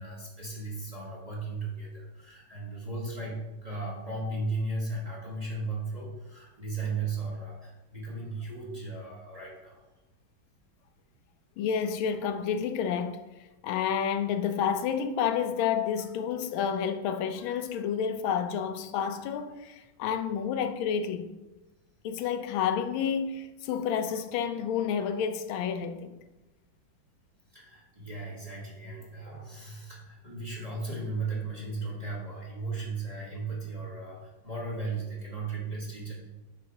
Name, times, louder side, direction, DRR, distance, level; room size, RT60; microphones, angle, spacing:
voice 1, 0.0-9.8 27.5-36.1, right 3 dB, 25° right, 1.1 m, -36 dB
voice 2, 11.6-13.3 13.6-21.3 22.0-26.1, left 7 dB, 90° left, 1.4 m, -30 dB
7.6 x 3.2 x 5.3 m
omnidirectional pair, 2.2 m